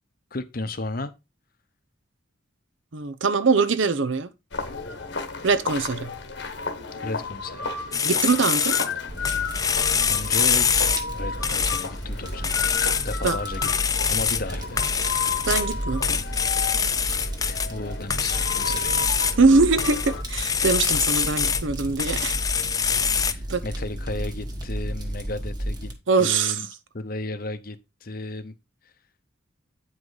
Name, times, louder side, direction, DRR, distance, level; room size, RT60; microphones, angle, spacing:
voice 1, 0.3-1.1 7.0-7.7 10.1-10.8 11.2-12.6 13.0-13.7 14.1-14.8 17.4-18.9 23.2-25.9 26.2-26.7 26.9-28.5 28.8-28.9, left 2 dB, 45° left, 0.8 m, -34 dB
voice 2, 2.9-4.3 5.4-6.1 8.0-8.8 13.2-13.4 15.4-16.2 19.4-22.4 23.5-23.6 26.1-26.6, right 4 dB, 70° right, 0.7 m, -22 dB
sound 1, 4.5-20.2, left 4 dB, 60° left, 1.2 m, -34 dB
sound 2, 7.9-8.9 9.3-11.0 11.4-11.9 12.4-13.4 13.6-14.5 14.8-15.7 16.0-17.7 18.1-19.3 19.8-21.7 22.0-23.3, left 7 dB, 20° left, 0.4 m, -24 dB
Fire, 9.1-25.9, right 1 dB, 20° right, 1.2 m, -33 dB
8.8 x 5.1 x 4.0 m
head